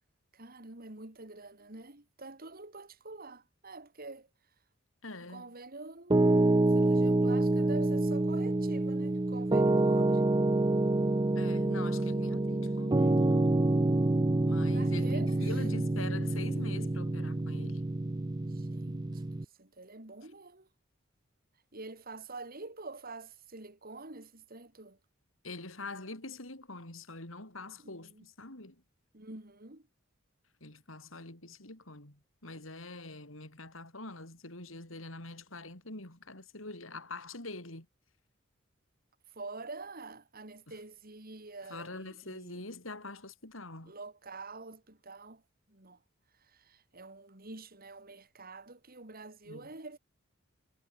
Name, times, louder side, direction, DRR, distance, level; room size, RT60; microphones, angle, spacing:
voice 1, 0.3-4.3 5.3-6.3 6.7-10.2 14.7-15.5 18.5-20.7 21.7-25.0 27.8-28.3 29.1-29.9 39.4-42.6 43.8-45.4 45.7-46.0 46.4-50.0, right 3 dB, 50° right, 3.7 m, -47 dB
voice 2, 5.0-5.5 11.3-13.5 14.4-17.8 25.4-28.8 30.6-37.9 40.7-40.8 41.7-43.9 49.5-49.7, left 2 dB, 80° left, 6.6 m, -44 dB
Piano, 6.1-19.4, right 2 dB, 20° right, 0.5 m, -27 dB
head